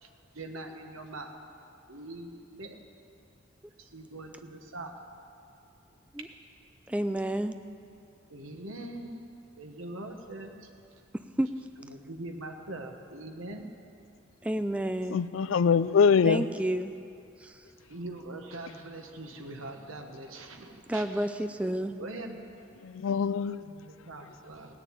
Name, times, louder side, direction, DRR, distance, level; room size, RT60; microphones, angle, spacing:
voice 1, 0.3-1.4 1.9-2.8 3.8-5.0 8.3-9.2 9.6-10.7 11.8-13.7 17.8-21.3 22.0-22.6 23.6-24.8, right 2 dB, 85° right, 4 dB, 1.4 m, -42 dB
voice 2, 6.9-7.6 11.1-11.5 14.4-15.2 16.2-16.9 17.4-17.6 20.9-21.9, right 1 dB, 5° right, 9 dB, 0.3 m, -30 dB
voice 3, 15.1-16.4 22.8-23.7, left 6 dB, 75° left, 15 dB, 0.4 m, -23 dB
17.5 x 6.7 x 9.0 m, 2.6 s
head